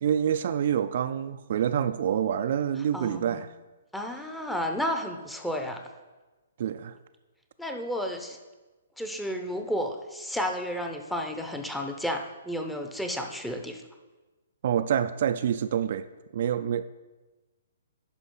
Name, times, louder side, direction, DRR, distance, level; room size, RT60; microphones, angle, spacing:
voice 1, 0.0-3.5 6.6-6.9 14.6-16.1 16.3-17.0, right 9 dB, 55° right, 0.3 m, -27 dB
voice 2, 2.9-3.4 3.9-5.8 7.6-8.4 9.0-13.8, equal, 5° left, 0.7 m, -32 dB
10.0 x 5.7 x 3.9 m
hypercardioid pair, 135°, 0 cm